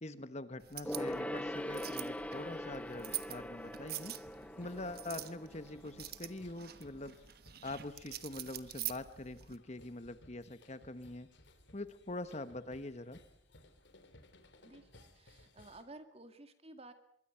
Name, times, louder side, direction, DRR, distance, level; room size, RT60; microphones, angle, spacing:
voice 1, 0.0-4.2 4.6-7.2 7.6-11.3 11.7-13.2, left 2 dB, 35° left, 12 dB, 1.2 m, -44 dB
sound 1, 0.6-9.6, right 13 dB, 55° right, 1.1 m, -46 dB
Gong, 0.8-6.7 7.0-7.1, left 1 dB, 5° left, 0.8 m, -42 dB
sound 2, 4.0-15.8, left 1 dB, 70° left, 3.3 m, -62 dB
voice 2, 14.6-16.9, right 2 dB, 35° right, 8 dB, 2.2 m, -54 dB
25.5 x 22.5 x 5.8 m, 0.69 s
head